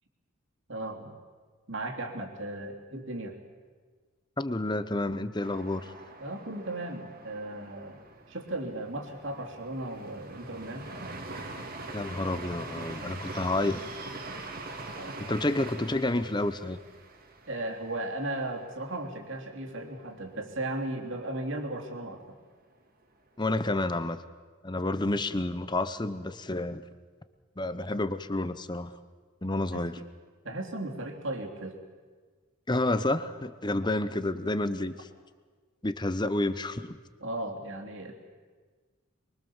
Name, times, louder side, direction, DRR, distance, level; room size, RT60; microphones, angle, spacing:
voice 1, 0.7-1.1 1.7-3.4 6.2-8.0 8.3-10.9 14.9-15.3 17.5-22.2 29.7-29.9 30.4-31.8 37.2-38.1, right 1 dB, 60° right, 1 dB, 3.2 m, -36 dB
voice 2, 4.4-5.9 11.9-13.8 15.2-16.8 23.4-24.2 24.6-26.8 27.6-28.9 29.4-30.0 32.7-35.1 35.8-37.0, left 2 dB, 20° left, 12 dB, 0.9 m, -29 dB
sound 1, 5.4-19.1 19.5-19.6 19.9-20.5, right 2 dB, 45° right, 2.3 m, -43 dB
24.0 x 23.5 x 7.3 m, 1.5 s
head